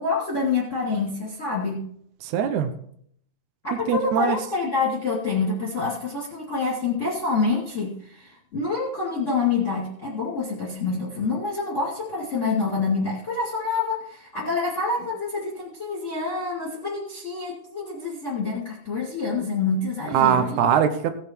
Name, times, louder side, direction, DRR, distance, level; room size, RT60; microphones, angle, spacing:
voice 1, 0.0-1.8 3.6-20.6, left 4 dB, 25° left, -3 dB, 2.0 m, -27 dB
voice 2, 2.2-2.7 3.9-4.4 20.1-21.1, right 8 dB, 80° right, 8 dB, 1.7 m, -21 dB
17.0 x 7.0 x 4.5 m, 0.65 s
omnidirectional pair, 4.5 m